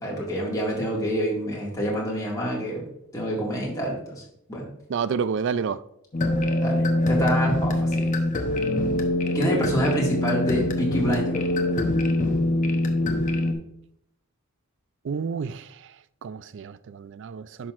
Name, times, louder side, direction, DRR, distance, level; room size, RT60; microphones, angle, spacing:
voice 1, 0.0-2.9 3.1-4.2 4.5-4.7 6.6-8.1 9.3-11.4, equal, 15° left, 2.0 m, -27 dB
voice 2, 4.9-5.8 15.0-15.7 16.2-17.7, right 6 dB, 55° right, 0.3 m, -29 dB
sound 1, 6.1-13.5, left 1 dB, 35° left, 0.8 m, -24 dB
10.5 x 6.0 x 2.5 m
head